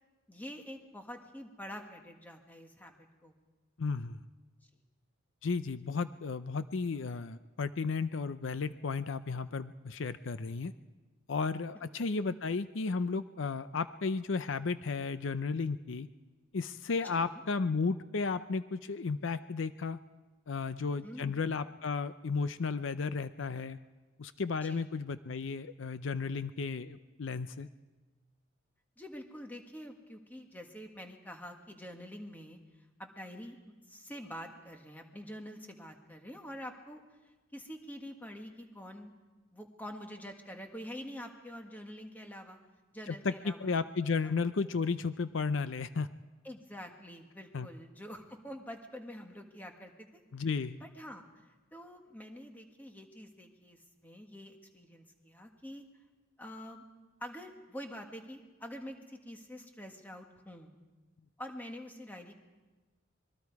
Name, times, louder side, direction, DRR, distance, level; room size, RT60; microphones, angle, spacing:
voice 1, 0.3-3.3 11.7-11.9 17.0-17.4 21.0-21.4 24.6-24.9 29.0-32.6 33.0-33.6 33.9-37.2 37.5-39.1 39.5-42.6 42.9-43.7 44.2-44.3 46.4-50.2 50.8-55.8 56.4-56.8 57.2-60.7 61.4-62.3, equal, 10° left, 3 dB, 1.7 m, -46 dB
voice 2, 3.8-4.2 5.4-10.7 11.3-16.1 16.5-20.0 20.5-23.8 24.2-27.7 43.1-46.1 47.5-47.7 50.3-50.8, left 4 dB, 70° left, 12 dB, 0.6 m, -34 dB
25.5 x 22.0 x 4.8 m, 1.2 s
head